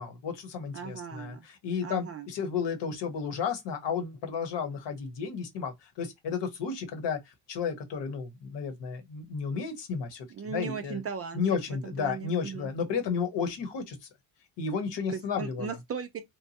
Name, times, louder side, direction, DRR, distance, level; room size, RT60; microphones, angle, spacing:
voice 1, 0.0-11.0 11.3-14.1 14.6-15.8, left 6 dB, 60° left, 1.1 m, -33 dB
voice 2, 0.7-1.5 1.8-2.3 10.3-12.7 15.1-16.2, right 6 dB, 35° right, 0.4 m, -37 dB
3.0 x 2.2 x 2.8 m
cardioid pair, 90°, 47 cm